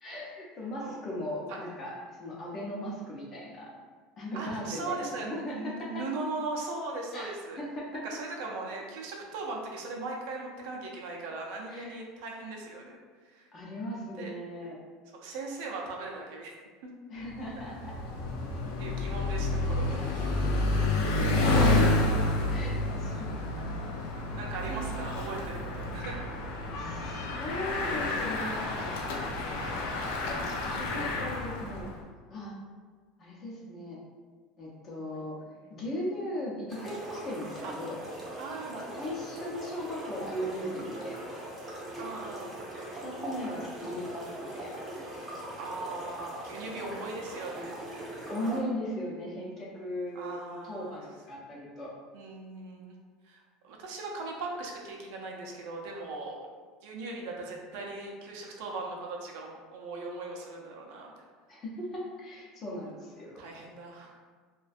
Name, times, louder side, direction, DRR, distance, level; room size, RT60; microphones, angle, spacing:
voice 1, 0.0-3.7 4.2-5.7 7.1-7.3 7.6-8.0 11.7-12.0 13.5-14.8 17.1-17.9 19.9-20.1 21.0-21.8 22.5-23.4 24.7-25.0 26.8-28.9 30.4-31.9 32.3-32.5 33.2-34.0 34.6-35.4 35.7-38.0 38.9-41.2 43.0-44.7 48.3-51.9 61.5-63.5, equal, 30° left, -4 dB, 0.6 m, -38 dB
voice 2, 4.3-7.6 8.0-13.0 13.3-13.5 14.2-14.3 15.1-16.5 18.8-20.3 21.9-22.0 23.1-23.2 23.5-23.7 24.4-26.3 29.5-29.8 35.1-35.2 37.6-37.7 38.4-39.0 42.0-42.7 43.8-43.9 45.6-48.3 50.2-51.0 52.1-53.0 53.3-56.4 56.8-61.1 63.4-64.2, right 3 dB, 70° right, -1 dB, 0.4 m, -39 dB
Bicycle, 17.3-31.9, left 2 dB, 90° left, 0.4 m, -29 dB
sound 1, 36.7-48.6, right 1 dB, 15° right, 0.6 m, -41 dB
2.5 x 2.1 x 2.4 m, 1.5 s
cardioid pair, 155°, 0 cm